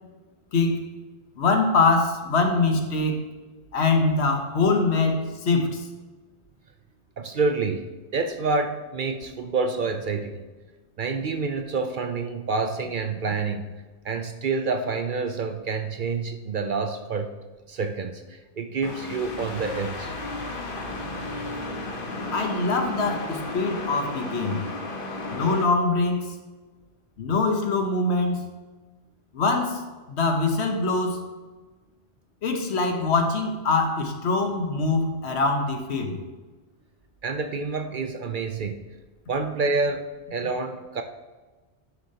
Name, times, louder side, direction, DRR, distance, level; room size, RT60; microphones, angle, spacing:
voice 1, 0.5-0.8 1.4-3.2 3.7-5.9 22.3-24.6 25.3-26.3 27.2-28.4 29.3-29.8 30.1-31.2 32.4-36.2, left 3 dB, 70° left, 5 dB, 1.3 m, -23 dB
voice 2, 7.2-7.9 8.1-10.4 11.0-13.7 14.0-17.3 17.7-20.1 37.2-38.8 39.3-41.0, right 4 dB, 55° right, 7 dB, 0.6 m, -28 dB
sound 1, 18.8-25.6, left 2 dB, 55° left, 1.2 m, -33 dB
11.0 x 6.5 x 2.8 m, 1.3 s
omnidirectional pair, 1.1 m